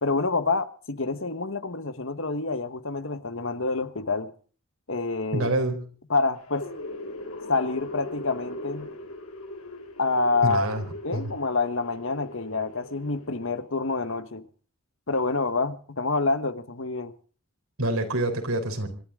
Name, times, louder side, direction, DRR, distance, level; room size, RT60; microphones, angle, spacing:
voice 1, 0.0-4.3 4.9-5.5 6.1-6.7 7.5-8.9 10.0-10.7 11.0-14.4 15.1-17.1, left 3 dB, 60° left, 1.4 m, -27 dB
voice 2, 5.3-5.8 10.4-10.8 11.1-11.2 17.8-18.9, right 2 dB, 75° right, 3.9 m, -26 dB
sound 1, 6.4-13.6, left 1 dB, 75° left, 6.0 m, -40 dB
26.0 x 12.5 x 3.7 m
head